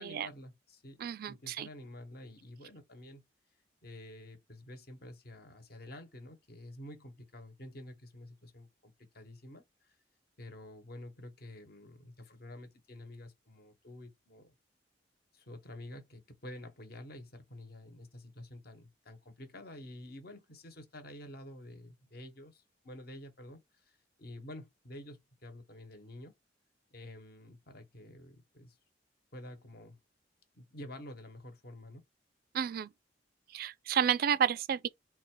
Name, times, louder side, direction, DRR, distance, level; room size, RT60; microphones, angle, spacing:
voice 1, 0.0-1.0 1.3-3.2 3.8-9.9 10.4-14.5 15.3-26.3 26.9-28.8 29.3-30.0 30.5-32.0, left 1 dB, 55° left, 1.1 m, -49 dB
voice 2, 1.0-1.7 32.5-32.9 33.5-34.9, right 8 dB, 55° right, 0.3 m, -31 dB
3.9 x 2.4 x 4.4 m
head